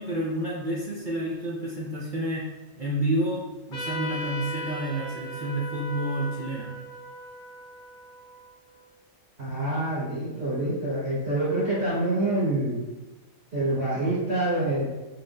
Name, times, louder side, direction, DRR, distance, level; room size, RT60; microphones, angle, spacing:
voice 1, 0.0-2.4 2.8-6.7, right 1 dB, 70° right, -5 dB, 0.4 m, -29 dB
Trumpet, 3.7-8.8, left 1 dB, 60° left, 0.5 m, -38 dB
voice 2, 9.4-12.8 13.5-14.9, right 1 dB, 45° right, -11 dB, 1.9 m, -26 dB
4.2 x 3.1 x 2.2 m, 1.1 s
omnidirectional pair, 1.5 m